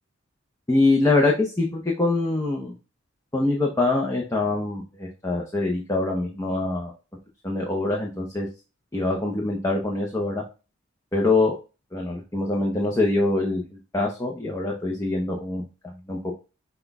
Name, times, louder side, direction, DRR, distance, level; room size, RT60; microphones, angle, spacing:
voice 1, 0.7-2.7 3.3-6.9 7.4-8.5 8.9-10.4 11.1-11.6 11.9-13.6 13.9-16.3, left 2 dB, 15° left, -2 dB, 0.6 m, -24 dB
5.9 x 2.3 x 3.5 m, 0.32 s
head